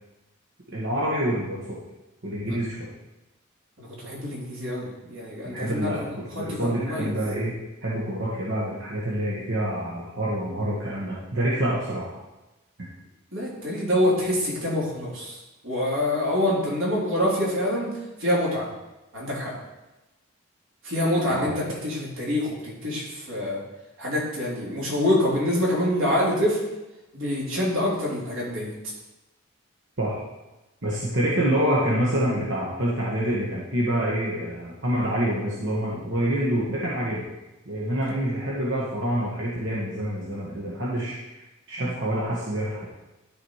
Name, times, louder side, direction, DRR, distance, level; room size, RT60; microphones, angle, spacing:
voice 1, 0.7-1.8 2.2-2.9 5.4-6.0 6.3-7.5 7.8-12.1 21.3-21.5 30.0-30.2 30.8-37.2 37.6-41.4 41.7-42.9, right 1 dB, 60° right, -6 dB, 1.6 m, -27 dB
voice 2, 3.8-7.1 13.3-17.9 18.2-18.7 19.1-19.5 20.8-23.6 24.0-26.6 27.1-28.7, left 1 dB, 85° right, -5 dB, 3.4 m, -26 dB
12.5 x 5.0 x 4.9 m, 1.0 s
head